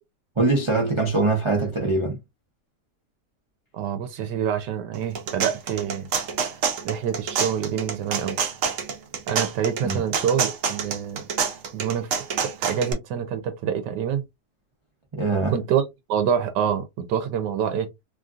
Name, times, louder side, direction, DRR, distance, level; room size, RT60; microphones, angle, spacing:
voice 1, 0.4-2.2 9.8-10.0 15.1-15.5, right 3 dB, 40° right, 0.4 m, -22 dB
voice 2, 3.7-6.1 6.8-8.4 9.3-11.2 11.7-12.1 12.4-14.2 15.5-15.8 16.1-17.9, right 8 dB, 85° right, 1.3 m, -26 dB
sound 1, 4.9-12.9, right 6 dB, 60° right, 1.0 m, -27 dB
3.2 x 2.5 x 2.4 m
omnidirectional pair, 1.8 m